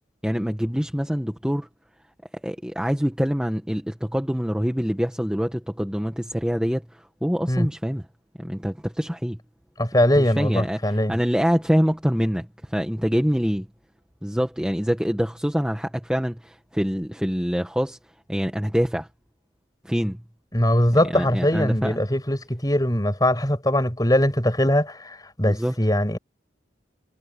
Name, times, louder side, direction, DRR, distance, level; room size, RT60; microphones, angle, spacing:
voice 1, 0.2-1.7 2.4-8.0 8.4-9.4 10.1-13.7 14.2-18.0 18.3-19.1 19.8-20.2 21.1-22.0 25.4-25.7, equal, 5° right, 1.5 m, -25 dB
voice 2, 9.8-11.1 20.5-26.2, left 1 dB, 20° left, 7.2 m, -21 dB
head